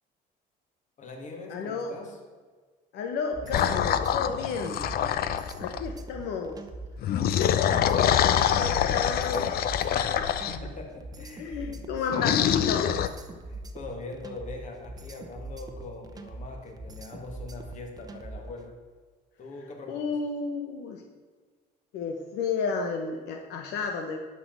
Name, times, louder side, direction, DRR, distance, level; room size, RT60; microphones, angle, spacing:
voice 1, 1.0-2.2 3.4-3.8 10.4-11.8 12.1-12.5 13.5-18.8 19.4-20.1, left 3 dB, 45° left, 3 dB, 2.4 m, -42 dB
voice 2, 1.5-2.0 2.9-4.9 5.3-6.6 8.2-10.3 11.4-12.9 19.9-21.0 21.9-24.2, left 5 dB, 85° left, 3 dB, 1.2 m, -32 dB
sound 1, 3.3-18.6, right 2 dB, 20° right, 1.0 m, -42 dB
sound 2, 3.5-5.9 7.0-10.6 12.1-13.1, left 9 dB, 65° left, 0.7 m, -25 dB
11.0 x 6.0 x 7.5 m, 1.5 s
cardioid pair, 110°, 17 cm